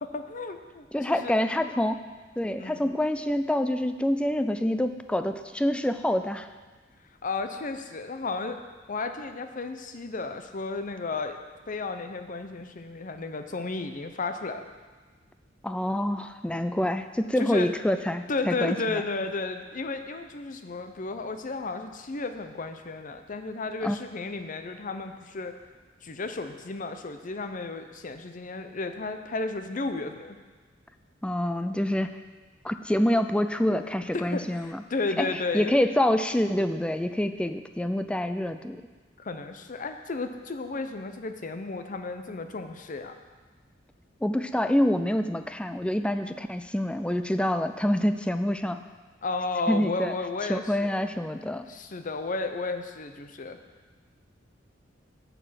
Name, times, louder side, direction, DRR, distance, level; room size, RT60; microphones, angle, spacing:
voice 1, 0.0-1.4 2.6-2.9 7.2-8.6 8.9-11.4 11.7-14.6 16.7-16.9 17.4-17.7 18.3-25.6 26.0-30.4 34.1-35.7 39.2-43.1 49.2-51.0 51.7-53.6, left 3 dB, 45° left, 7 dB, 0.7 m, -33 dB
voice 2, 0.9-2.0 2.4-6.5 15.6-19.0 23.8-24.0 31.2-32.2 32.6-34.8 35.2-38.8 44.2-48.8 49.7-50.1 50.5-51.7, left 1 dB, 5° left, 9 dB, 0.4 m, -26 dB
9.4 x 6.9 x 5.8 m, 1.3 s
head